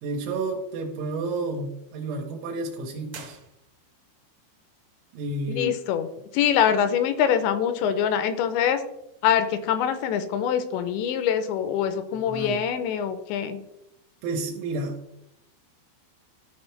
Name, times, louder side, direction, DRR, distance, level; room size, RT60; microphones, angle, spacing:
voice 1, 0.0-3.4 5.1-5.8 12.1-12.7 14.2-15.0, right 2 dB, 80° right, 1 dB, 3.2 m, -31 dB
sound 1, 3.1-4.1, right 6 dB, 65° right, 2.0 m, -46 dB
voice 2, 5.5-6.1 6.3-8.8 9.2-13.6, left 8 dB, 80° left, 10 dB, 2.8 m, -24 dB
13.5 x 4.5 x 3.2 m, 0.86 s
omnidirectional pair, 5.3 m